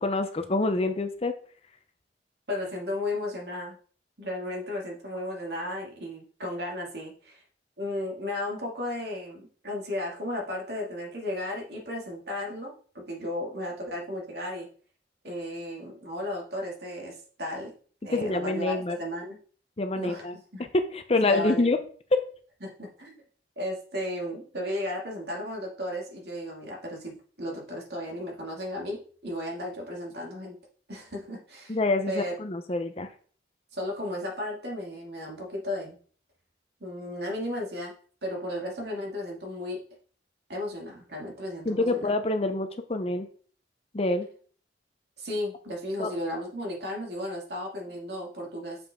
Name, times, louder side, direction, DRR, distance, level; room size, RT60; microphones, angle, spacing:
voice 1, 0.0-1.3 18.1-19.0 19.8-20.3 20.7-21.8 22.1-22.2 31.7-33.1 41.7-43.3 43.9-44.3 46.0-46.1, left 2 dB, 35° left, 8 dB, 0.7 m, -26 dB
voice 2, 2.5-3.8 4.2-7.4 7.8-14.7 15.2-17.7 18.0-19.4 19.9-20.2 20.5-20.7 21.3-21.8 22.6-23.2 23.6-30.5 30.9-31.8 32.1-32.3 33.7-36.0 36.8-37.9 38.2-39.8 40.5-42.1 45.2-48.8, left 1 dB, 65° right, -1 dB, 2.4 m, -34 dB
6.9 x 5.6 x 3.7 m, 0.44 s
head